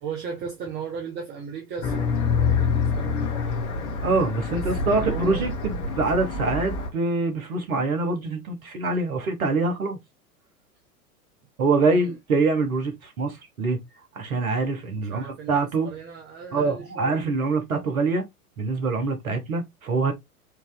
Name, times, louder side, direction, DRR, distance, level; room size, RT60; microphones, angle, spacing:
voice 1, 0.0-2.0 2.3-3.6 4.5-5.5 11.9-12.1 15.1-17.2, right 6 dB, 25° right, 0.7 m, -37 dB
sound 1, 1.8-6.9, left 5 dB, 50° left, 1.2 m, -26 dB
voice 2, 4.0-10.0 11.6-13.8 14.1-15.9 16.5-18.2 18.6-20.1, right 3 dB, 65° right, 1.3 m, -25 dB
4.5 x 2.6 x 2.4 m
figure-of-eight pair, 90°, 45 cm